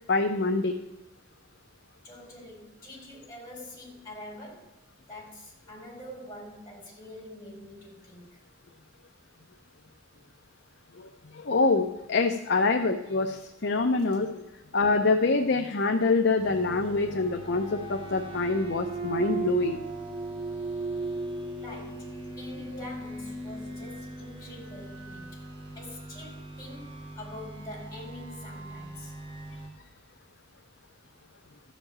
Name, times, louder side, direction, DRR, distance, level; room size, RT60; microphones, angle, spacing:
voice 1, 0.1-0.7 11.0-14.4 14.7-19.8, left 3 dB, 55° left, 4 dB, 0.7 m, -25 dB
voice 2, 2.0-4.8 5.1-8.4 14.5-14.6 21.6-25.4 25.7-29.1, left 1 dB, 15° left, -3 dB, 4.3 m, -45 dB
sound 1, 16.4-29.7, right 3 dB, 25° right, 2.6 m, -38 dB
13.5 x 5.2 x 8.7 m, 1.0 s
head